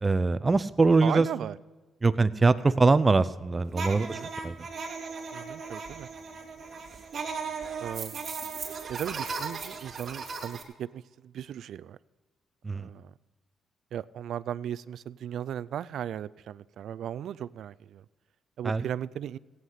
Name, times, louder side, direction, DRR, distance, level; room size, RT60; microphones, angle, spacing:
voice 1, 0.0-1.3 2.0-4.7 12.6-12.9 18.6-18.9, right 3 dB, 25° right, 14 dB, 0.6 m, -23 dB
voice 2, 1.0-1.6 3.9-4.3 5.3-6.1 7.8-8.3 8.9-12.0 12.7-13.1 13.9-18.0 18.6-19.4, right 10 dB, 75° right, 18 dB, 0.4 m, -36 dB
sound 1, 3.7-10.6, right 4 dB, 45° right, 2.7 m, -37 dB
16.0 x 9.4 x 5.7 m, 1.3 s
cardioid pair, 90°, 0 cm